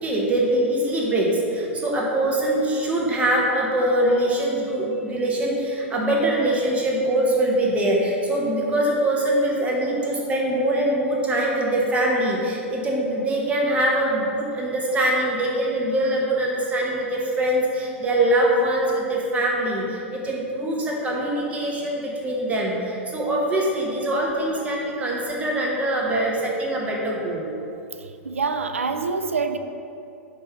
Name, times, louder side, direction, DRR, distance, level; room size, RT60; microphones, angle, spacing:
voice 1, 0.0-27.4, right 1 dB, 20° right, -2 dB, 1.1 m, -23 dB
voice 2, 28.2-29.6, right 4 dB, 85° right, 8 dB, 0.3 m, -25 dB
5.2 x 3.4 x 5.6 m, 2.7 s
figure-of-eight pair, 100°, 7 cm